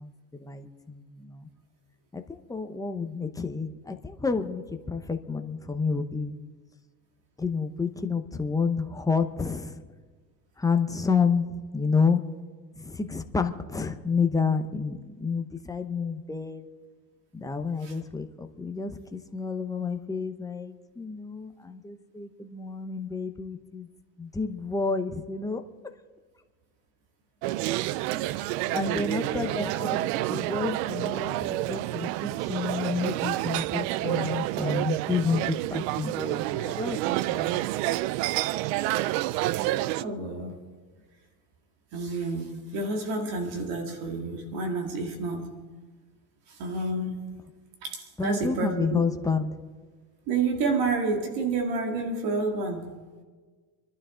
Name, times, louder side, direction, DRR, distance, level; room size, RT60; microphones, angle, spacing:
voice 1, 0.0-1.5 2.1-6.3 7.4-9.8 10.6-12.2 12.8-16.7 17.3-23.9 24.2-25.6 28.7-30.0 30.3-37.7 48.2-49.6, left 5 dB, 10° left, 6 dB, 0.8 m, -30 dB
sound 1, 27.4-40.0, right 16 dB, 90° right, 0.5 m, -29 dB
voice 2, 28.7-29.5 40.0-40.6 41.9-45.5 46.5-47.2 47.8-49.0 50.3-52.8, right 3 dB, 70° right, 3 dB, 2.3 m, -29 dB
27.0 x 12.0 x 3.8 m, 1.4 s
cardioid pair, 130°, 46 cm